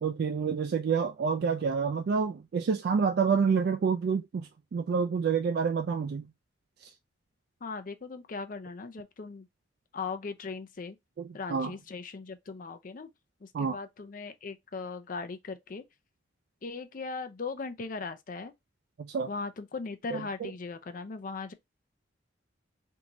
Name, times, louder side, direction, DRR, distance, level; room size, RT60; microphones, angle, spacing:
voice 1, 0.0-6.3 6.8-6.9 11.5-11.7 13.5-13.8 19.0-19.3 20.1-20.5, right 6 dB, 55° right, 0.3 m, -28 dB
voice 2, 7.6-9.5 9.9-11.0 11.3-13.1 13.4-15.8 16.6-18.5 19.3-21.5, left 4 dB, 45° left, 0.5 m, -38 dB
3.5 x 2.6 x 2.9 m
head